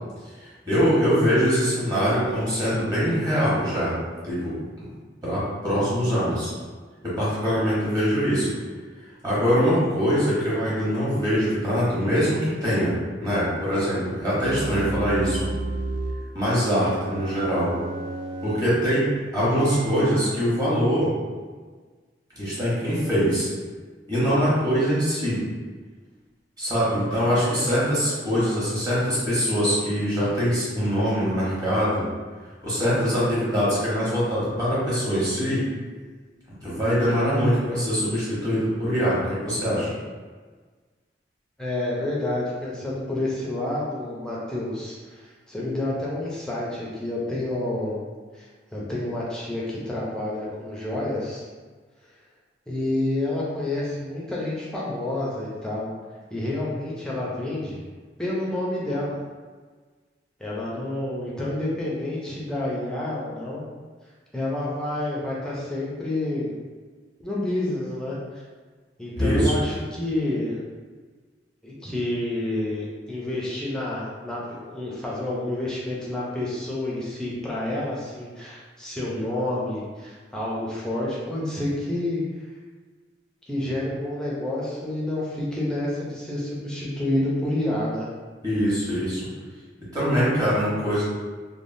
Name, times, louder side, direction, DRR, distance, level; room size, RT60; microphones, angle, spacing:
voice 1, 0.4-4.0 4.2-4.5 4.9-5.0 5.2-6.5 7.0-8.5 9.2-15.5 16.3-17.7 18.4-21.1 22.4-23.5 24.1-25.4 26.6-32.0 32.6-35.6 36.6-39.9 69.2-69.5 88.4-89.2 89.9-91.0, equal, 20° right, -10 dB, 1.1 m, -23 dB
sound 1, 14.4-16.2 16.8-18.7 19.4-20.2, right 3 dB, 80° right, 0.3 m, -31 dB
voice 2, 41.6-48.0 48.3-48.5 48.7-51.5 52.7-55.9 56.3-57.8 58.2-59.2 60.4-63.6 64.3-66.5 67.2-68.2 69.0-70.6 71.6-74.4 74.6-82.2 83.5-88.1, left 1 dB, 5° left, -6 dB, 0.5 m, -29 dB
3.4 x 2.0 x 2.5 m, 1.4 s
head